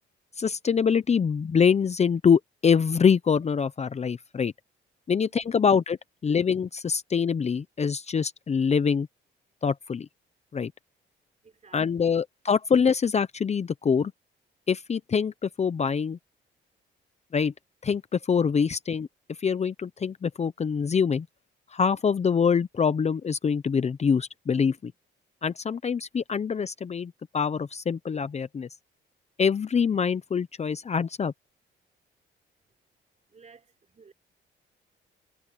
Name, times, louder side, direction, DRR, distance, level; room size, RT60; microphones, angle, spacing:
voice 1, 0.4-4.5 5.1-6.0 6.2-9.1 9.6-10.1 10.5-10.7 11.7-14.1 14.7-16.2 17.3-17.5 17.8-19.1 19.4-21.3 21.7-24.9 25.4-28.7 29.4-31.3, left 6 dB, 35° left, 0.8 m, -24 dB
voice 2, 11.4-12.1 33.3-34.1, right 5 dB, 35° right, 4.3 m, -55 dB
cardioid pair, 90°, 20 cm